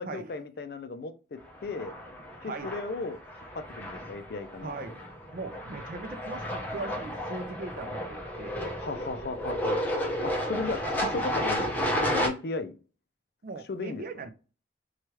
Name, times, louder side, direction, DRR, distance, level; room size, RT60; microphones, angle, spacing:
voice 1, 0.0-1.9 2.4-3.2 3.5-4.7 8.8-9.8 10.2-12.7 13.7-14.0, left 3 dB, 60° left, 0.4 m, -35 dB
sound 1, 1.6-12.3, equal, 10° left, 0.5 m, -32 dB
voice 2, 2.4-2.7 4.6-5.0 5.3-8.6 13.4-14.3, right 3 dB, 50° right, 0.4 m, -39 dB
3.0 x 2.3 x 3.0 m
head